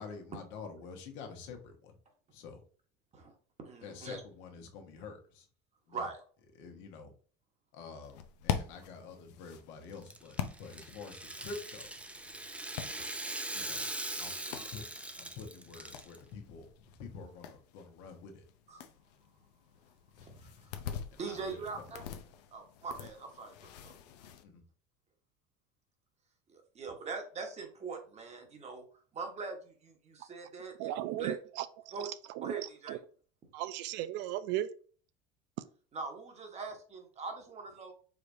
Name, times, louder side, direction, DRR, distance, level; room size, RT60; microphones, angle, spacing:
voice 1, 0.0-1.9 2.3-2.6 3.8-5.5 5.9-6.1 6.5-7.1 7.7-11.9 13.5-13.9 14.2-18.4 20.1-20.5 21.1-21.8 24.4-24.6, left 5 dB, 65° left, 4 dB, 1.2 m, -48 dB
voice 2, 3.1-4.2 5.9-6.2 14.4-14.7 18.7-18.8 20.2-20.7 21.2-22.0 22.5-23.9 26.5-28.9 29.1-31.4 31.9-32.1 32.4-33.0 35.9-37.9, right 4 dB, 35° right, 4 dB, 1.2 m, -42 dB
sound 1, 8.0-24.4, left 9 dB, 85° left, 0.6 m, -45 dB
Rattle (instrument), 9.9-16.2, right 1 dB, 5° right, 0.5 m, -41 dB
voice 3, 30.8-31.7 32.4-32.5 32.9-33.0 33.5-34.7, right 13 dB, 60° right, 14 dB, 0.4 m, -35 dB
4.9 x 3.3 x 2.6 m, 0.42 s
supercardioid pair, 100°, 20 cm